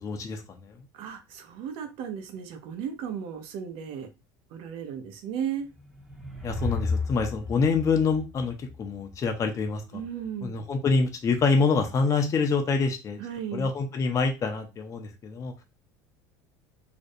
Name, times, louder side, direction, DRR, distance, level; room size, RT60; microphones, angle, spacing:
voice 1, 0.0-0.7 6.4-9.8 10.4-13.2 13.5-15.5, left 4 dB, 30° left, 0.5 m, -26 dB
voice 2, 0.9-4.1 4.5-5.7 9.9-10.7 13.2-13.7, right 8 dB, 60° right, 0.6 m, -35 dB
sound 1, 5.6-9.1, left 3 dB, 5° right, 0.7 m, -33 dB
2.5 x 2.1 x 2.5 m
supercardioid pair, 105°, 10 cm